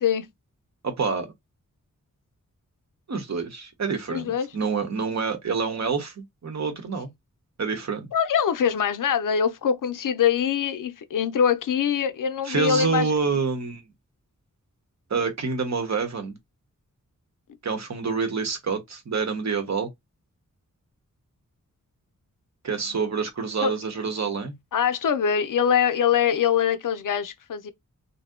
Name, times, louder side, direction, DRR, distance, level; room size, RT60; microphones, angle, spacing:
voice 1, 0.8-1.3 3.1-7.1 7.6-8.1 12.4-13.8 15.1-16.4 17.6-19.9 22.6-24.5, right 5 dB, 55° right, 0.9 m, -27 dB
voice 2, 4.1-4.5 8.1-13.1 22.8-23.0 23.6-23.7 24.7-27.7, left 8 dB, 75° left, 0.5 m, -23 dB
2.7 x 2.1 x 3.6 m
wide cardioid pair, 95°, 32 cm